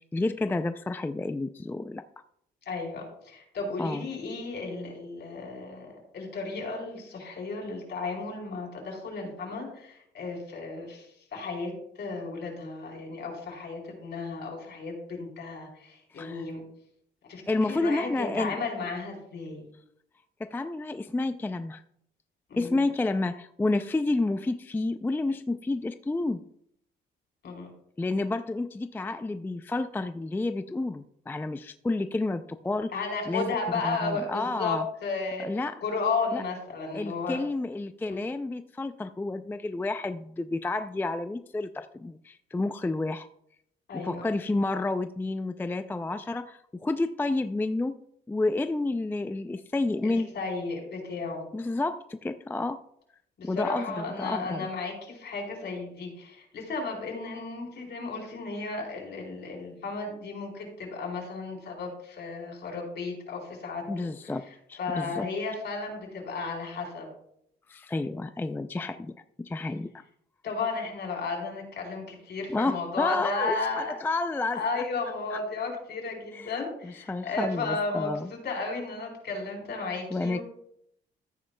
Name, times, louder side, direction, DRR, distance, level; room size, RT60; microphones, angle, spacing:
voice 1, 0.0-2.0 3.8-4.1 16.1-16.5 17.5-18.6 20.4-21.8 22.6-26.4 28.0-33.6 33.8-34.9 35.4-35.7 36.3-36.4 36.9-43.3 43.9-48.0 48.3-50.3 51.5-52.8 53.4-54.7 63.9-65.3 67.7-69.1 69.4-69.9 72.5-74.6 75.3-75.4 76.3-76.5 76.8-78.3 80.1-80.4, left 2 dB, 10° left, 10 dB, 0.4 m, -30 dB
voice 2, 2.7-5.9 6.1-16.6 17.3-19.7 22.5-22.7 27.4-27.7 32.9-35.5 35.8-37.4 38.1-38.2 43.9-44.2 50.0-51.5 53.4-64.1 64.8-67.1 70.4-74.0 74.5-80.4, left 3 dB, 60° left, 1 dB, 4.0 m, -34 dB
14.0 x 9.3 x 2.2 m, 0.72 s
cardioid pair, 90°, 20 cm